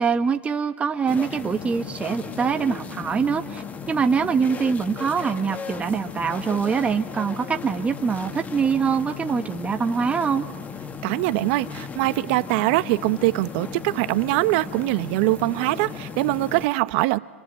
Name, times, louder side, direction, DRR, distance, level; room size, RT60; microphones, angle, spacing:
voice 1, 0.0-10.5, right 6 dB, 20° right, 5 dB, 1.4 m, -24 dB
sound 1, 1.1-16.7, left 6 dB, 20° left, 1.8 m, -36 dB
voice 2, 11.0-17.2, right 20 dB, 55° right, 13 dB, 1.2 m, -23 dB
28.0 x 27.5 x 7.7 m, 1.3 s
hypercardioid pair, 105°, 7 cm